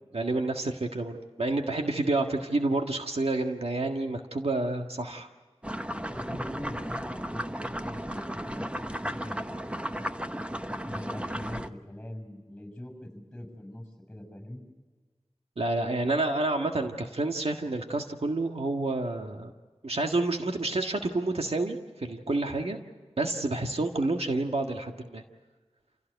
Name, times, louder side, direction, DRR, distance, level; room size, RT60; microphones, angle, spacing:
voice 1, 0.1-5.3 15.6-19.5 19.8-22.8 23.2-25.2, right 2 dB, 70° right, 3 dB, 1.7 m, -29 dB
sound 1, 5.6-11.7, equal, 10° right, 0.9 m, -35 dB
voice 2, 5.9-9.4 10.0-10.3 10.8-14.6, left 1 dB, 10° left, 7 dB, 6.3 m, -42 dB
28.0 x 17.0 x 8.1 m, 1.4 s
wide cardioid pair, 65°, 11 cm